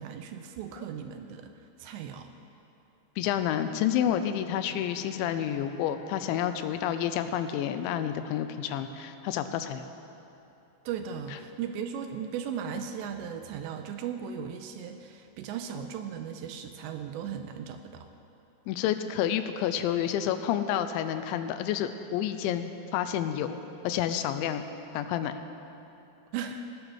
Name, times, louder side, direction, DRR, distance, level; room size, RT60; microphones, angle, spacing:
voice 1, 0.0-1.5 1.8-2.3 10.9-18.1 26.3-26.6, right 7 dB, 85° right, 6 dB, 2.7 m, -37 dB
voice 2, 3.2-9.8 18.7-24.6 24.9-25.3, left 10 dB, 85° left, 9 dB, 3.0 m, -29 dB
Bowed string instrument, 3.6-8.0, right 1 dB, 65° right, 4.6 m, -52 dB
17.5 x 9.9 x 6.4 m, 2.9 s
omnidirectional pair, 5.3 m